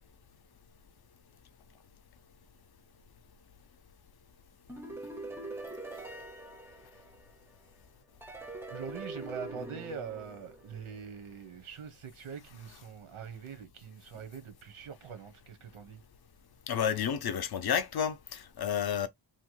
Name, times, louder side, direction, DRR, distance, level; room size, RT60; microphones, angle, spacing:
sound 1, 4.7-7.5 8.2-11.0, right 2 dB, 5° right, 0.4 m, -43 dB
voice 1, 8.7-16.0, right 7 dB, 90° right, 0.9 m, -43 dB
voice 2, 16.7-19.1, left 8 dB, 50° left, 0.5 m, -31 dB
2.9 x 2.1 x 3.0 m
wide cardioid pair, 110°, 49 cm